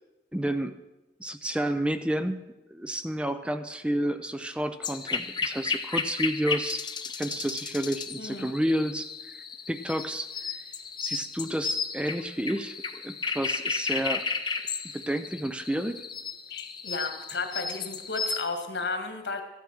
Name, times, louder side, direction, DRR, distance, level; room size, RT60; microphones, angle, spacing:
voice 1, 0.3-0.8 1.2-2.4 2.7-6.8 7.2-10.6 11.0-12.8 13.0-14.3 14.9-16.0, right 1 dB, 5° right, 10 dB, 0.4 m, -30 dB
sound 1, 4.8-18.4, left 5 dB, 25° left, 0.7 m, -34 dB
voice 2, 8.2-8.5 16.5-19.4, left 4 dB, 85° left, 5 dB, 1.8 m, -33 dB
14.0 x 9.2 x 6.2 m, 1.1 s
head